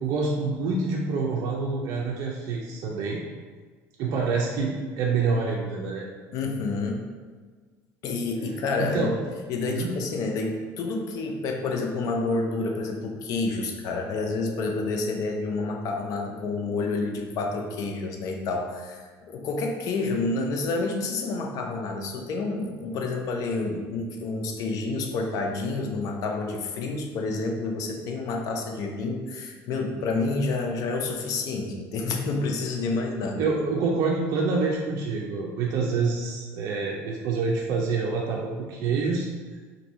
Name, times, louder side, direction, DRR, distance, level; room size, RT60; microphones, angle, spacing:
voice 1, 0.0-3.2 4.0-6.1 8.8-9.1 9.7-9.9 33.4-39.3, right 4 dB, 60° right, -2 dB, 0.5 m, -27 dB
voice 2, 6.3-7.1 8.0-9.1 9.5-33.5, left 3 dB, 60° left, 2 dB, 0.5 m, -29 dB
2.6 x 2.6 x 4.3 m, 1.5 s
cardioid pair, 120°, 7 cm